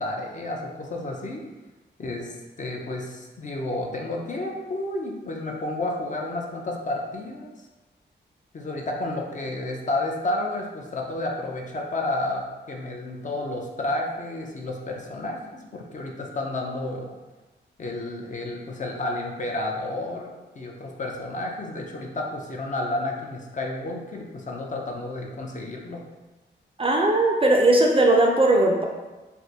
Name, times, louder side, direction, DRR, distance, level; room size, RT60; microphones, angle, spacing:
voice 1, 0.0-1.5 2.0-7.5 8.5-17.2 17.8-26.0, left 2 dB, 40° left, 0 dB, 0.5 m, -31 dB
voice 2, 26.8-28.8, right 2 dB, 30° right, 1 dB, 0.3 m, -18 dB
3.3 x 2.5 x 2.7 m, 1.2 s
wide cardioid pair, 115°, 19 cm